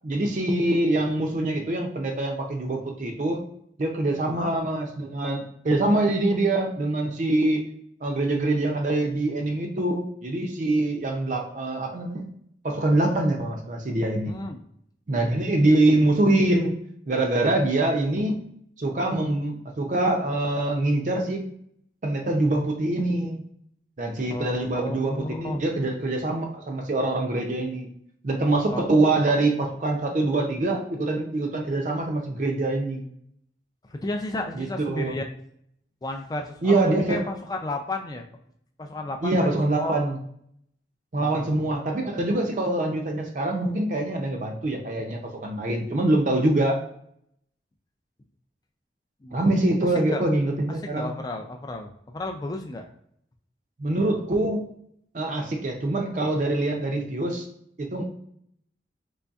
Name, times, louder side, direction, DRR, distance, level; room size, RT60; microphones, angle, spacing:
voice 1, 0.0-3.4 3.8-7.6 8.0-12.3 12.6-14.3 15.1-16.7 17.1-18.4 18.8-21.5 22.0-23.4 24.0-27.9 28.2-33.1 34.5-35.2 36.6-37.3 39.2-40.2 41.1-46.8 49.3-51.1 53.8-54.7 55.1-57.5 57.8-58.0, right 2 dB, 45° right, 2 dB, 0.4 m, -24 dB
voice 2, 14.3-14.6 24.3-25.6 28.7-29.0 33.8-35.2 36.0-38.2 38.8-40.1 41.1-41.8 49.2-49.6 49.9-50.3 50.8-52.9, left 2 dB, 20° left, 4 dB, 0.3 m, -33 dB
3.9 x 3.2 x 2.3 m, 0.70 s
head